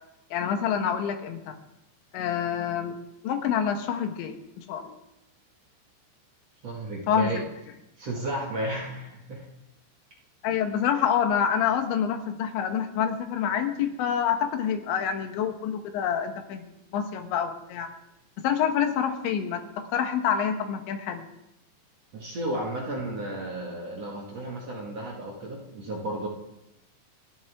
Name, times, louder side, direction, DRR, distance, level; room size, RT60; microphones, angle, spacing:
voice 1, 0.3-1.6 2.1-3.0 3.2-4.9 7.1-7.3 10.4-17.9 18.4-21.3, left 8 dB, 85° left, 6 dB, 3.6 m, -27 dB
voice 2, 6.6-7.4 8.0-9.5 22.1-26.3, right 1 dB, 45° right, -2 dB, 2.4 m, -33 dB
28.5 x 12.0 x 3.6 m, 0.88 s
omnidirectional pair, 5.2 m